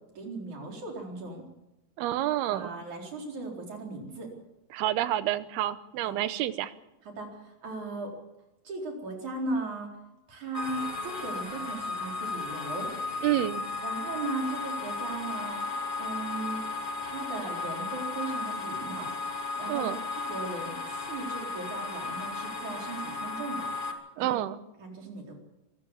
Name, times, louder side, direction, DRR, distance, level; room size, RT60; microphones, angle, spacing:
voice 1, 0.2-1.5 2.5-4.3 6.0-6.2 7.0-8.1 8.6-10.0 10.3-12.9 13.8-16.6 17.0-19.1 19.6-19.9 20.3-23.7 24.2-24.4 24.8-25.4, right 3 dB, 45° right, 1 dB, 5.3 m, -37 dB
voice 2, 2.0-2.7 4.7-6.7 13.2-13.6 19.7-20.0 24.2-24.6, right 13 dB, 75° right, 13 dB, 2.8 m, -28 dB
sound 1, 10.5-23.9, left 3 dB, 20° left, 1.6 m, -35 dB
25.0 x 15.0 x 7.2 m, 0.98 s
omnidirectional pair, 4.8 m